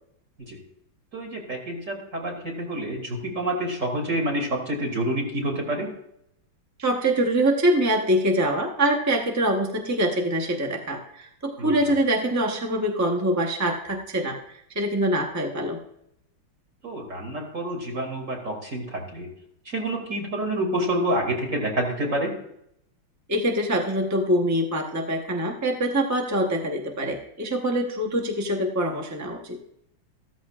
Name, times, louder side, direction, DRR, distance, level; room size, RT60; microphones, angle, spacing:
voice 1, 1.1-5.9 11.6-11.7 16.8-19.3 19.6-22.3, right 1 dB, 40° right, 1 dB, 2.7 m, -28 dB
voice 2, 6.8-15.8 23.3-29.6, right 1 dB, 20° right, 2 dB, 0.4 m, -24 dB
14.0 x 13.5 x 2.4 m, 0.76 s
omnidirectional pair, 2.2 m